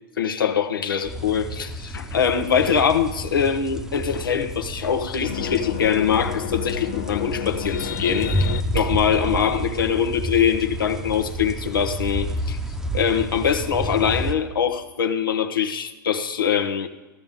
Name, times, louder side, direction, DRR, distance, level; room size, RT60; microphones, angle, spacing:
voice 1, 0.2-12.6 12.9-16.9, left 7 dB, 90° left, 7 dB, 1.1 m, -23 dB
sound 1, 1.0-14.3, right 1 dB, 5° right, 0.8 m, -30 dB
sound 2, 5.2-8.6, left 11 dB, 65° left, 0.7 m, -31 dB
15.0 x 12.5 x 3.7 m, 1.2 s
hypercardioid pair, 110°, 11 cm